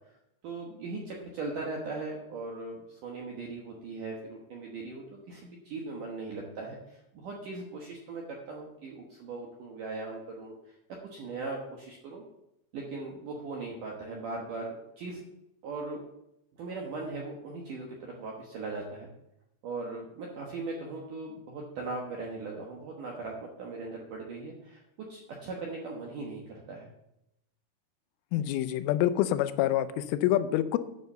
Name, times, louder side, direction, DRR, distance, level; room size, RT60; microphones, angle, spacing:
voice 1, 0.4-10.6 11.1-12.2 12.7-15.3 15.6-16.0 16.6-19.1 19.6-24.8 25.1-26.9, right 3 dB, 75° right, -1 dB, 1.9 m, -39 dB
voice 2, 28.3-30.8, left 13 dB, 90° left, 12 dB, 3.2 m, -26 dB
9.4 x 6.6 x 6.6 m, 0.85 s
omnidirectional pair, 5.6 m